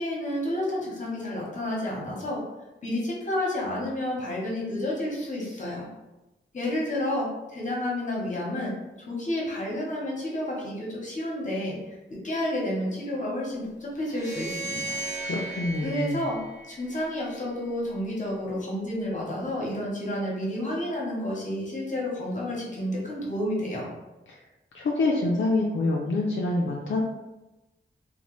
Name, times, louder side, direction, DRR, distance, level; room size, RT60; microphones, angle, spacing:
voice 1, 0.0-2.4 2.8-5.9 6.5-8.7 9.1-11.8 12.1-15.0 15.8-16.4 16.6-23.8, left 1 dB, 40° left, -4 dB, 0.9 m, -30 dB
sound 1, 14.0-17.3, right 2 dB, 15° right, 0.9 m, -36 dB
voice 2, 15.2-16.2 24.7-27.0, left 2 dB, 70° left, -2 dB, 0.4 m, -26 dB
3.0 x 2.1 x 3.0 m, 1.0 s
wide cardioid pair, 120°, 21 cm